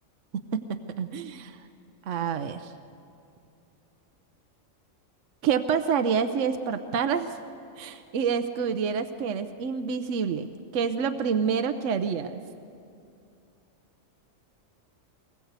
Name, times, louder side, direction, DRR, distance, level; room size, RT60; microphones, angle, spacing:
voice 1, 0.3-1.6 2.1-2.7 5.4-7.4 7.8-12.4, right 6 dB, 70° right, 8 dB, 1.1 m, -28 dB
23.5 x 20.5 x 8.0 m, 2.6 s
omnidirectional pair, 1.4 m